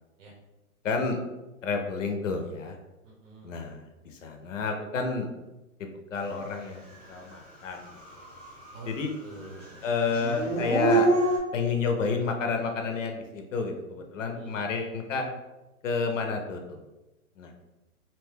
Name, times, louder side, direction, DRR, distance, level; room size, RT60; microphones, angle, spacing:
voice 1, 0.8-1.2 1.6-2.8 3.4-5.3 6.1-6.8 7.1-7.9 8.9-9.1 9.8-11.1 11.5-15.3 15.8-16.8 17.4-17.5, left 4 dB, 60° left, 4 dB, 0.5 m, -30 dB
voice 2, 3.0-3.6 8.7-9.9 14.2-14.7, right 3 dB, 60° right, -2 dB, 0.7 m, -46 dB
Dog / Siren, 7.0-7.1 7.6-9.0 9.3-11.4, right 2 dB, 5° right, 0.6 m, -26 dB
2.6 x 2.1 x 3.2 m, 1.1 s
hypercardioid pair, 155°, 44 cm